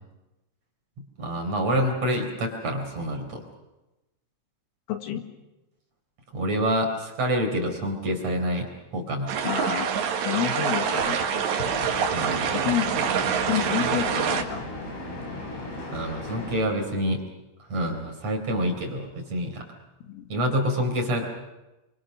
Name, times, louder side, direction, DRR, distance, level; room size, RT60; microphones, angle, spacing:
voice 1, 1.2-3.4 6.3-9.3 12.1-12.5 15.9-17.2 17.7-19.7 20.3-21.2, equal, 35° right, 2 dB, 4.7 m, -27 dB
voice 2, 4.9-5.2 9.4-9.9 10.2-11.5 12.5-12.9 13.5-14.7 20.0-20.2, left 10 dB, 80° left, 5 dB, 4.5 m, -29 dB
sound 1, 9.3-14.4, right 7 dB, 65° right, 3.8 m, -26 dB
sound 2, 11.6-16.6, left 2 dB, 50° left, 9.0 m, -36 dB
30.0 x 24.5 x 6.4 m, 0.99 s
omnidirectional pair, 6.0 m